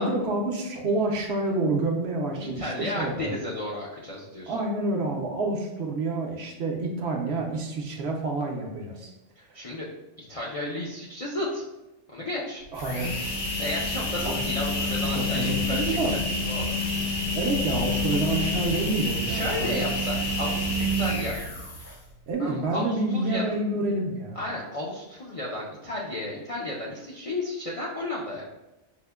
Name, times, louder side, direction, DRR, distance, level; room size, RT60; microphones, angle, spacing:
voice 1, 0.0-3.3 4.5-9.1 12.7-13.1 14.2-14.5 15.1-16.2 17.3-19.8 22.3-24.4, right 2 dB, 65° right, 1 dB, 0.8 m, -28 dB
voice 2, 2.4-4.6 9.4-9.9 10.2-11.6 12.1-12.6 13.6-16.2 16.5-16.7 19.0-21.4 22.4-23.4 24.3-28.4, left 1 dB, 50° left, -6 dB, 0.4 m, -33 dB
sound 1, 12.6-22.1, left 2 dB, 80° left, 1.4 m, -28 dB
5.4 x 2.1 x 2.2 m, 0.98 s
omnidirectional pair, 1.2 m